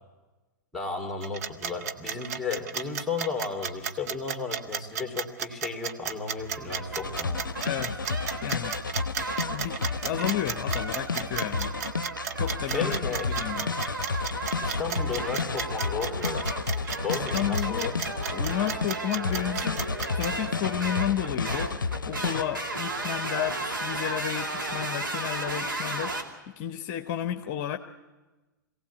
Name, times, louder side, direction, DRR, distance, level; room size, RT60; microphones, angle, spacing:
voice 1, 0.7-7.4 12.6-13.3 14.6-16.5 17.0-18.0, left 5 dB, ahead, 3 dB, 2.6 m, -34 dB
sound 1, 1.2-20.3, right 8 dB, 55° right, 1.1 m, -33 dB
sound 2, 6.4-26.2, right 2 dB, 85° right, 2.5 m, -35 dB
sound 3, 7.0-18.9 19.2-22.4, left 4 dB, 80° left, 0.6 m, -32 dB
voice 2, 7.6-8.0 8.4-8.7 9.5-11.7 12.4-13.0 13.3-13.7 17.3-17.9 18.3-19.8 20.1-21.8 22.1-26.2 26.6-27.8, left 11 dB, 35° left, 8 dB, 0.9 m, -32 dB
23.0 x 17.0 x 8.3 m, 1.2 s
figure-of-eight pair, 110°, 11 cm